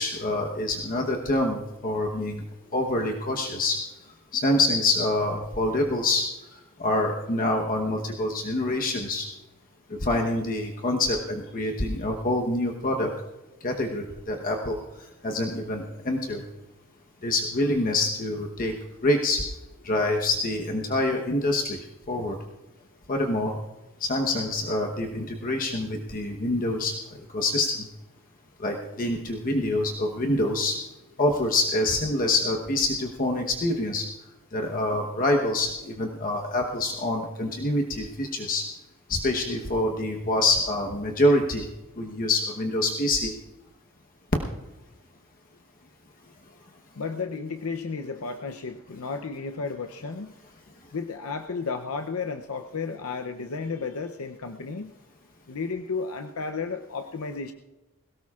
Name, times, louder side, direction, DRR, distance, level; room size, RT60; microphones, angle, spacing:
voice 1, 0.0-2.4 2.7-3.8 4.3-9.3 9.9-13.1 13.6-14.8 15.2-16.4 17.2-18.7 19.0-19.4 19.8-22.4 23.1-23.6 24.0-27.0 27.3-27.9 28.6-30.8 31.2-34.1 34.5-38.6 39.1-41.7 42.0-43.3, left 2 dB, 40° left, 1 dB, 1.1 m, -26 dB
voice 2, 47.0-50.3 50.9-54.9 55.5-57.5, left 4 dB, 70° left, 6 dB, 0.6 m, -33 dB
21.0 x 17.5 x 2.4 m, 1.1 s
head